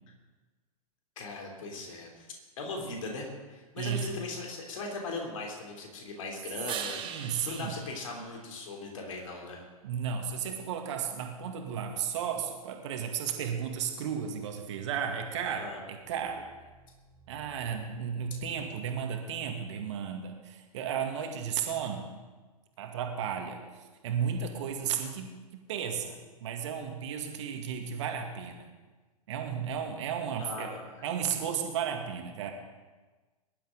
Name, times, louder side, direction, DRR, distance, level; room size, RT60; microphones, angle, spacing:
voice 1, 1.2-2.3 2.6-9.6 15.6-15.8 30.4-31.0, left 3 dB, 55° left, 1 dB, 3.3 m, -39 dB
voice 2, 3.8-4.1 7.1-7.8 9.8-16.5 17.3-22.1 22.8-28.7 29.3-30.7 31.0-32.5, right 7 dB, 50° right, 3 dB, 2.0 m, -34 dB
sound 1, 6.6-9.2 15.0-18.9, right 8 dB, 25° right, 1.3 m, -45 dB
22.0 x 11.5 x 3.9 m, 1.3 s
figure-of-eight pair, 100°, 20 cm